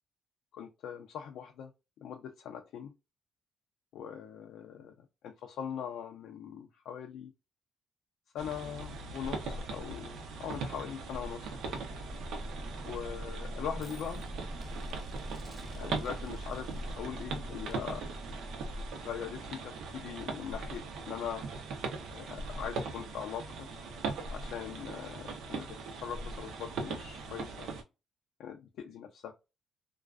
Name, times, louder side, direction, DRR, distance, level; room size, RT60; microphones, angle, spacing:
voice 1, 0.5-1.7 2.0-2.9 3.9-4.9 5.2-7.3 8.3-11.8 12.9-14.2 15.8-18.0 19.0-21.4 22.1-23.7 24.3-27.7 28.4-29.3, left 8 dB, 80° left, 0.4 m, -41 dB
sound 1, 8.4-27.8, right 3 dB, 80° right, 0.5 m, -40 dB
sound 2, 11.3-19.8, right 1 dB, 5° left, 0.8 m, -44 dB
2.4 x 2.2 x 2.3 m
cardioid pair, 90°, 0 cm